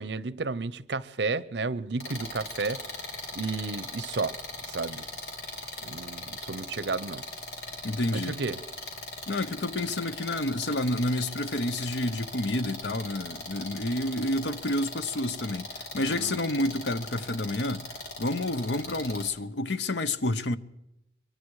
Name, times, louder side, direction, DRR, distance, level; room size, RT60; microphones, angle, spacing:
voice 1, 0.0-2.8 3.3-4.4 4.7-5.0 5.8-7.2 8.1-8.6 16.1-16.4, right 3 dB, 80° right, 0.8 m, -32 dB
sound 1, 2.0-19.3, left 1 dB, 60° left, 4.9 m, -39 dB
voice 2, 7.8-8.4 9.3-17.8 18.2-20.6, left 1 dB, 85° left, 1.0 m, -29 dB
25.0 x 23.5 x 4.9 m
head